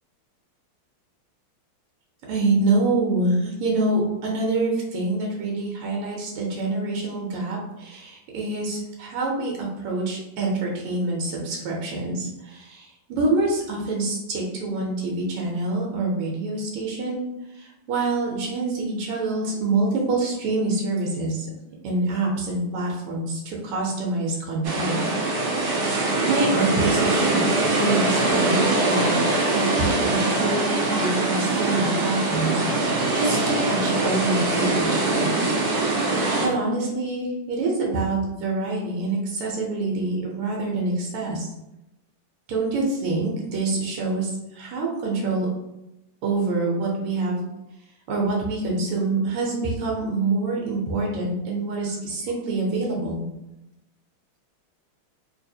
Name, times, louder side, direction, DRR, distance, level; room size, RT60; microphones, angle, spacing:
voice 1, 2.3-17.2 17.5-21.5 21.8-25.0 25.6-35.5 36.4-41.4 42.5-45.5 46.2-47.4 48.1-53.3, right 2 dB, 80° right, -2 dB, 1.6 m, -26 dB
sound 1, 24.6-36.5, right 2 dB, 65° right, 1.1 m, -23 dB
3.4 x 3.2 x 2.7 m, 0.92 s
omnidirectional pair, 2.4 m